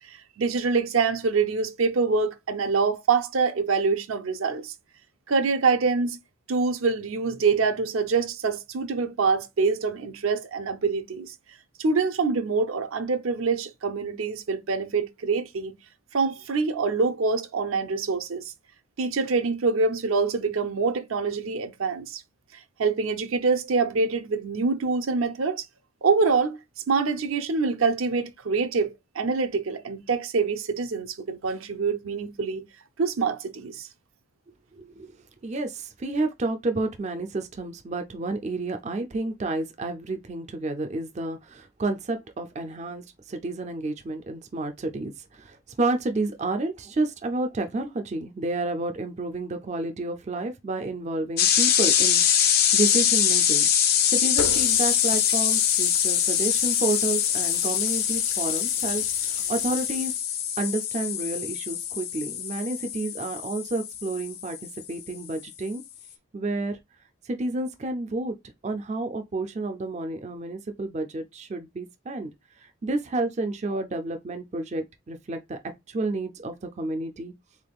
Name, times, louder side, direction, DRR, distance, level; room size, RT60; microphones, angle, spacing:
voice 1, 0.1-4.7 5.3-6.2 6.5-11.3 11.8-15.8 16.1-18.4 19.0-22.2 22.5-25.6 26.0-26.6 26.9-32.6 33.0-33.9, right 4 dB, 80° right, 0.6 m, -25 dB
voice 2, 34.7-35.1 35.4-52.2 52.7-60.1 60.6-64.6 64.9-65.8 66.3-66.8 67.2-68.4 68.6-72.3 72.6-75.6 75.9-77.3, right 2 dB, 35° right, 0.4 m, -30 dB
sound 1, 51.4-65.0, left 9 dB, 45° left, 0.5 m, -24 dB
Water tap faucet, 54.4-60.2, left 7 dB, 75° left, 0.7 m, -35 dB
3.7 x 3.4 x 2.3 m
head